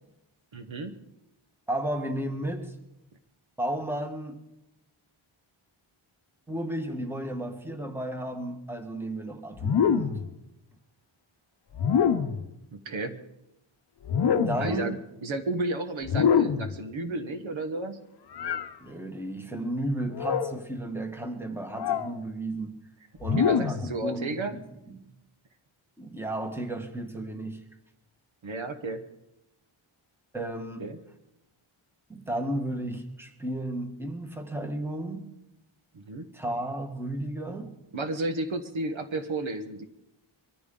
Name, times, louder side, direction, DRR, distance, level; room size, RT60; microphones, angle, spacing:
voice 1, 0.5-1.0 12.7-13.2 14.6-14.9 15.2-18.0 23.4-24.5 28.4-29.0 30.8-31.0 35.9-36.3 37.9-39.8, right 2 dB, 65° right, 8 dB, 1.3 m, -32 dB
voice 2, 1.7-2.7 3.6-4.4 6.5-10.1 14.3-15.0 18.8-22.8 23.2-25.0 26.0-27.6 30.3-30.8 32.1-35.2 36.3-37.7, right 1 dB, 5° right, 5 dB, 1.4 m, -33 dB
sound 1, 9.6-10.3 11.7-12.5 14.0-14.8 16.0-16.8 18.3-18.7 20.1-20.6 21.7-22.1 23.2-23.9, left 7 dB, 50° left, 0.8 m, -25 dB
23.0 x 14.0 x 3.8 m, 0.89 s
wide cardioid pair, 150°, 50 cm